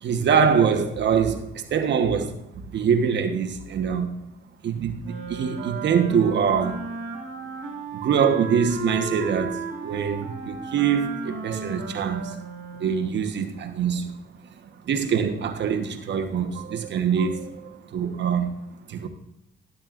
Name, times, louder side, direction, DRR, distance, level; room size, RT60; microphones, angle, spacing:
voice 1, 0.0-2.3 2.6-4.2 4.6-6.9 8.0-12.3 12.8-14.2 14.9-18.5 18.9-19.1, right 7 dB, 65° right, 1.2 m, -24 dB
Wind instrument woodwind instrument, 5.0-13.2, right 4 dB, 80° right, 1.8 m, -35 dB
12.0 x 10.5 x 2.5 m
cardioid pair, 90°, 20 cm